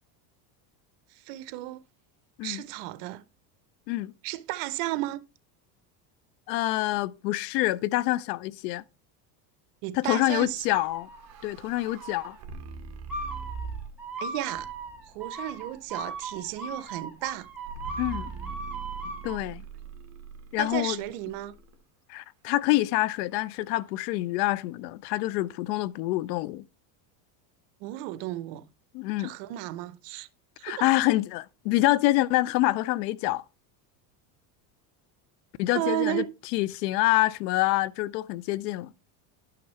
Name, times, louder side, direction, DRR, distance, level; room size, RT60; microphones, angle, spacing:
voice 1, 1.1-1.8 2.4-3.2 4.2-5.2 9.8-10.7 14.2-14.7 15.1-17.5 20.6-21.6 27.8-28.7 29.2-30.3 30.6-30.9 35.7-36.3, right 16 dB, 65° right, 0.8 m, -33 dB
voice 2, 6.5-8.8 9.9-11.1 11.4-12.4 18.0-18.3 19.2-19.6 20.5-21.0 22.1-26.7 28.9-29.3 30.6-33.4 35.6-36.2 36.5-38.9, left 17 dB, 85° left, 0.6 m, -26 dB
sound 1, 10.7-11.5 11.9-12.4 13.1-19.4, right 2 dB, 5° right, 2.5 m, -38 dB
sound 2, 10.8-14.1 14.5-15.1 17.7-21.8, right 5 dB, 35° right, 1.4 m, -41 dB
11.5 x 5.9 x 3.1 m
supercardioid pair, 135°, 48 cm